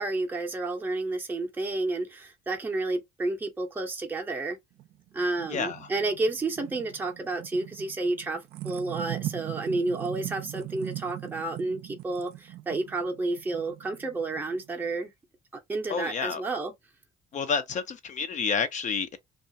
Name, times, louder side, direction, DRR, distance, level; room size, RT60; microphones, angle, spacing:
voice 1, 0.0-4.6 5.1-15.1 15.7-16.7, right 2 dB, 10° right, 0.6 m, -31 dB
sound 1, 4.8-14.9, right 15 dB, 70° right, 0.4 m, -40 dB
voice 2, 5.5-5.9 15.9-16.4 17.3-19.2, left 6 dB, 45° left, 0.5 m, -29 dB
2.4 x 2.3 x 2.6 m
cardioid pair, 110°, 17 cm